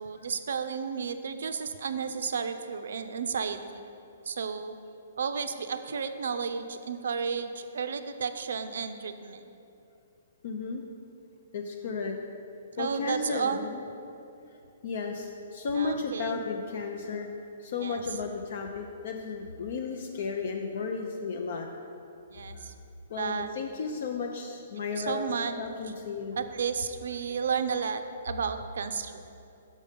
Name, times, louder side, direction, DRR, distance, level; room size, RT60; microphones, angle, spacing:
voice 1, 0.0-3.9 4.3-4.7 5.2-9.5 12.8-13.7 15.8-16.4 17.8-18.0 22.3-22.7 23.2-23.5 24.9-25.6 26.3-29.2, right 6 dB, 75° right, 9 dB, 0.4 m, -32 dB
voice 2, 10.4-10.8 11.5-12.2 12.8-13.8 14.8-17.3 17.6-21.7 22.5-22.7 23.1-25.3 25.6-26.4, left 5 dB, 55° left, 3 dB, 0.5 m, -34 dB
6.3 x 5.3 x 5.1 m, 2.7 s
hypercardioid pair, 160°, 0 cm